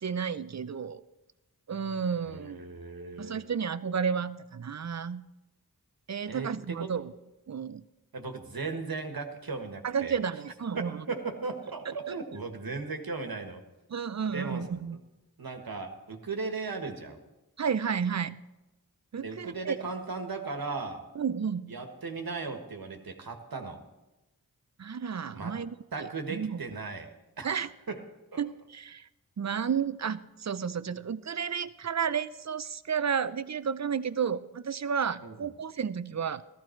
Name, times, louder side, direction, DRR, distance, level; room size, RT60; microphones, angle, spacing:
voice 1, 0.0-1.0 1.7-2.6 3.2-5.3 6.1-7.1 7.5-7.8 9.8-11.0 12.1-12.2 13.9-15.0 17.6-18.4 19.1-19.8 21.2-21.8 24.8-26.6 27.4-27.7 28.4-29.1 29.4-36.4, right 7 dB, 45° right, 15 dB, 0.6 m, -32 dB
voice 2, 2.2-3.4 6.3-6.9 8.1-10.2 10.7-13.6 14.3-14.7 15.4-17.2 19.1-21.0 21.7-23.8 25.3-25.6 25.9-27.1 27.4-27.6 27.9-28.0 28.3-28.4 35.2-35.5, right 4 dB, 65° right, 5 dB, 1.7 m, -37 dB
14.5 x 14.0 x 4.5 m, 1.0 s
cardioid pair, 45°, 38 cm